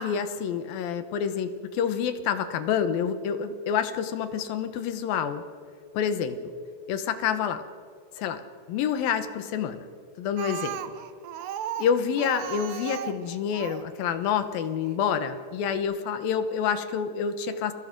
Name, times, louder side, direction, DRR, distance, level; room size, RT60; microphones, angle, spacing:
voice 1, 0.0-5.4 5.9-6.4 6.9-7.6 8.2-8.4 8.7-9.8 10.2-10.8 11.8-17.7, left 7 dB, 70° left, 10 dB, 2.6 m, -28 dB
Speech, 10.4-13.9 14.9-15.0 15.4-15.5 15.7-15.8, right 11 dB, 85° right, 3.1 m, -36 dB
30.0 x 22.5 x 5.2 m, 2.2 s
omnidirectional pair, 4.7 m